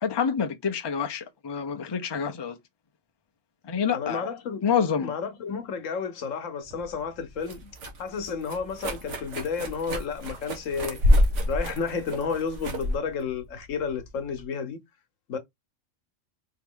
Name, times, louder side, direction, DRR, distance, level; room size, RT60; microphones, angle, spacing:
voice 1, 0.0-2.6 3.6-4.3 4.6-5.1, left 7 dB, 30° left, 0.6 m, -27 dB
voice 2, 3.9-4.6 5.0-7.7 8.0-14.8 15.3-15.4, left 5 dB, 85° left, 1.2 m, -32 dB
sound 1, 6.7-14.4, equal, 70° right, 1.4 m, -28 dB
4.6 x 3.0 x 3.7 m
omnidirectional pair, 1.3 m